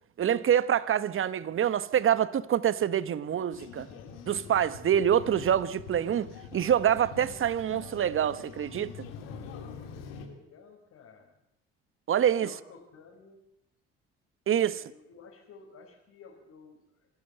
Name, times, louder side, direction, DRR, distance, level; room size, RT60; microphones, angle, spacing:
voice 1, 0.2-3.9 4.3-9.1 12.1-12.5 14.5-14.8, right 9 dB, 45° right, 1.2 m, -26 dB
sound 1, 3.5-10.3, left 6 dB, 75° left, 3.1 m, -44 dB
voice 2, 10.2-11.4 12.2-13.4 14.6-17.1, left 5 dB, 55° left, 4.8 m, -53 dB
26.5 x 13.5 x 8.0 m
hypercardioid pair, 55°, 31 cm